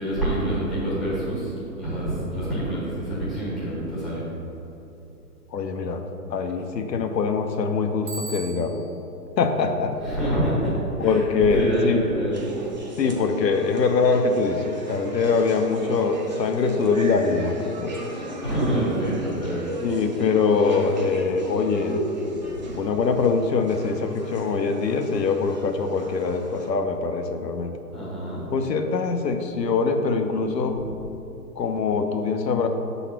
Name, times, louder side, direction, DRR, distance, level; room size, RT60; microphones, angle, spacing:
voice 1, 0.0-4.4 10.0-12.4 18.4-19.7 22.4-22.9 27.9-28.5 30.7-30.8, right 1 dB, ahead, -10 dB, 1.1 m, -27 dB
voice 2, 5.5-8.8 9.4-10.0 11.0-12.0 13.0-18.1 19.8-22.0 22.7-27.8 28.5-30.8 31.6-32.7, left 4 dB, 80° left, 6 dB, 0.9 m, -23 dB
Bicycle bell, 8.1-9.0, right 2 dB, 50° right, 1.4 m, -37 dB
sound 1, 12.3-26.7, right 1 dB, 30° right, 0.5 m, -35 dB
6.2 x 4.1 x 5.7 m, 2.8 s
hypercardioid pair, 160°, 49 cm